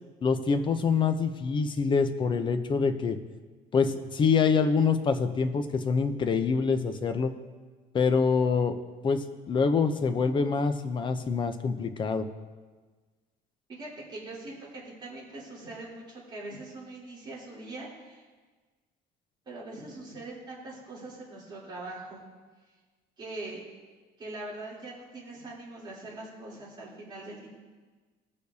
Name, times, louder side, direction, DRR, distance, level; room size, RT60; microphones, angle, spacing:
voice 1, 0.2-3.2 3.7-7.3 7.9-8.7 9.0-12.3, left 5 dB, 30° left, 8 dB, 0.6 m, -25 dB
voice 2, 13.7-18.2 19.4-22.2 23.2-23.6 24.2-27.5, right 2 dB, 25° right, -7 dB, 3.4 m, -42 dB
19.5 x 6.7 x 2.8 m, 1.4 s
cardioid pair, 160°, 17 cm